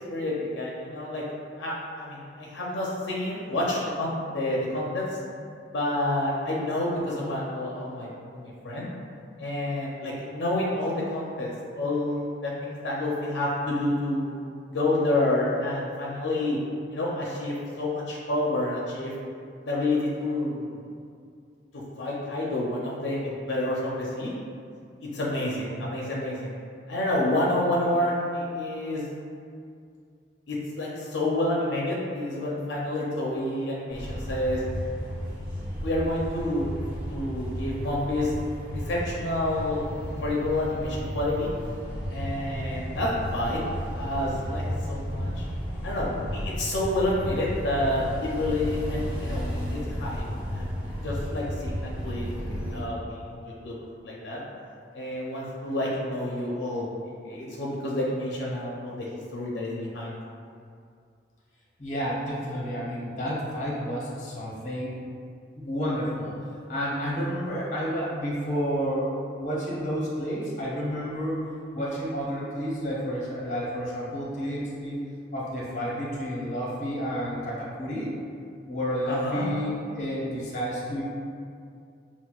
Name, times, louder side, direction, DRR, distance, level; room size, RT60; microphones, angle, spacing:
voice 1, 0.1-1.2 1.6-5.0 5.7-8.9 9.4-14.3 14.7-16.6 16.9-19.1 19.6-20.7 22.0-24.3 25.0-26.5 26.9-29.1 30.5-34.6 35.8-36.7 37.1-38.3 38.7-41.5 42.1-43.6 43.9-44.6 44.9-45.5 45.8-50.7 51.0-52.3 52.7-53.7 54.0-54.4 54.9-56.9 57.2-59.1 59.3-60.2 79.1-79.5, left 1 dB, 75° left, -4 dB, 0.5 m, -29 dB
sound 1, 33.9-52.8, equal, 50° right, 1.0 m, -33 dB
voice 2, 61.8-64.9 65.6-66.4 66.7-71.4 71.7-75.0 75.3-78.1 78.7-81.0, equal, 40° left, -6 dB, 0.7 m, -30 dB
5.9 x 2.0 x 2.3 m, 2.3 s
head